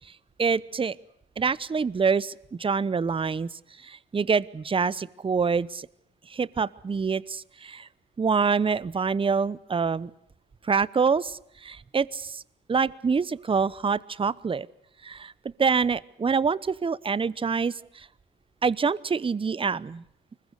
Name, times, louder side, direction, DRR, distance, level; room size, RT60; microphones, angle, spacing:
voice 1, 0.4-1.0 1.4-2.3 2.6-3.5 3.8-5.9 6.3-7.9 8.2-10.1 10.7-12.4 12.7-14.7 15.0-15.3 15.6-18.1 18.6-20.0, right 5 dB, 25° right, 19 dB, 0.9 m, -26 dB
25.0 x 21.5 x 8.2 m, 0.75 s
cardioid pair, 90°, 20 cm